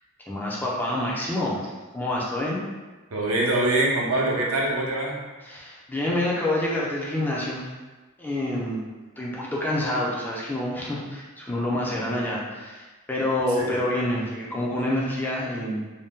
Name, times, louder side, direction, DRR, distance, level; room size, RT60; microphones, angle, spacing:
voice 1, 0.3-1.7 1.9-2.6 5.4-7.7 8.2-8.8 9.2-15.8, left 1 dB, 10° left, -5 dB, 0.4 m, -27 dB
voice 2, 3.1-5.1 13.5-13.7, right 2 dB, 70° right, -3 dB, 0.7 m, -24 dB
2.7 x 2.1 x 3.5 m, 1.2 s
head